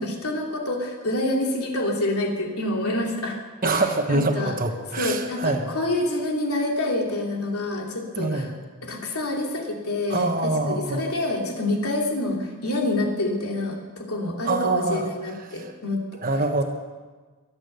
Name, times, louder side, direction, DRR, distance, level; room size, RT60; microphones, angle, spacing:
voice 1, 0.0-3.8 4.1-4.5 5.0-8.5 8.8-16.0, left 1 dB, 85° left, 1 dB, 2.8 m, -27 dB
voice 2, 3.6-5.7 8.1-8.6 10.1-11.1 14.4-15.1 15.5-15.7 16.2-16.6, right 2 dB, 40° right, 4 dB, 1.3 m, -25 dB
23.0 x 8.7 x 6.8 m, 1.4 s
head